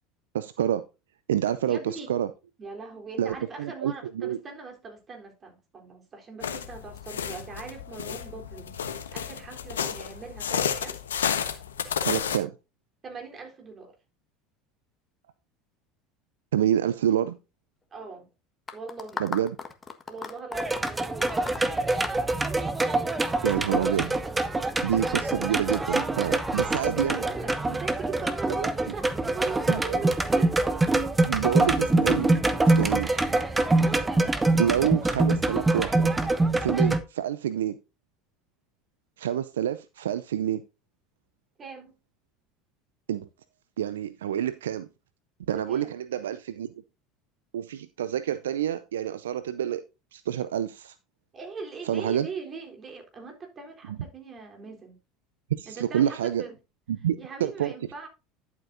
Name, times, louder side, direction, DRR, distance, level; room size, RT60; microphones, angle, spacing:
voice 1, 0.3-0.8 1.3-2.3 3.2-4.4 12.1-12.5 16.5-17.4 19.2-19.6 23.4-24.1 24.8-27.2 29.7-30.0 31.3-32.3 32.6-33.1 34.6-36.1 36.6-37.8 39.2-40.6 43.1-43.3 43.8-44.9 45.5-46.7 47.5-49.8 50.1-50.9 51.9-52.3 55.5-56.4 56.9-57.7, right 10 dB, 80° right, 0.5 m, -28 dB
voice 2, 1.6-2.1 2.6-8.8 9.1-11.0 13.0-13.9 17.9-18.3 18.7-19.3 20.1-21.0 26.6-30.6 33.0-33.6 41.6-42.0 45.5-46.0 51.3-55.0 55.7-56.6 57.2-58.1, right 4 dB, 35° right, 3.7 m, -40 dB
sound 1, 6.4-12.4, left 8 dB, 85° left, 1.2 m, -31 dB
sound 2, 18.7-23.1, left 5 dB, 25° left, 1.5 m, -38 dB
sound 3, 20.5-37.0, right 2 dB, 15° right, 1.1 m, -25 dB
11.5 x 8.2 x 2.7 m
hypercardioid pair, 75°, 0 cm